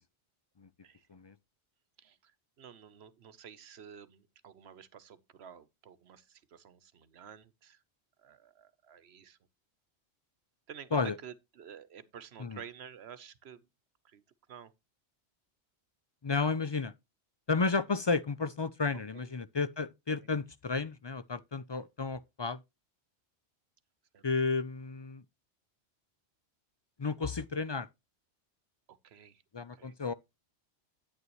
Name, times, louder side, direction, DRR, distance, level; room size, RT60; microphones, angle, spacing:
voice 1, 2.0-7.8 8.2-9.4 10.7-13.7 14.0-14.2 14.5-14.7 18.9-19.3 24.1-24.2 28.9-29.4 29.7-30.0, right 8 dB, 70° right, 1.1 m, -51 dB
voice 2, 16.2-16.9 17.5-22.6 24.2-25.2 27.0-27.9 29.5-30.1, left 4 dB, 45° left, 0.3 m, -32 dB
9.6 x 9.5 x 3.0 m
omnidirectional pair, 1.1 m